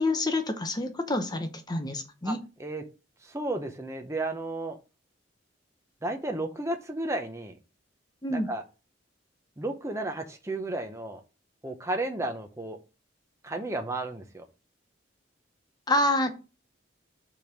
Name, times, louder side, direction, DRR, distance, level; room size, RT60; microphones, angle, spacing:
voice 1, 0.0-2.4 8.2-8.5 15.9-16.3, left 1 dB, 20° left, 7 dB, 0.8 m, -27 dB
voice 2, 3.2-4.8 6.0-7.5 8.3-8.6 9.6-11.2 11.6-12.8 13.4-14.4, right 2 dB, 15° right, 4 dB, 0.8 m, -33 dB
5.2 x 4.5 x 6.0 m, 0.31 s
head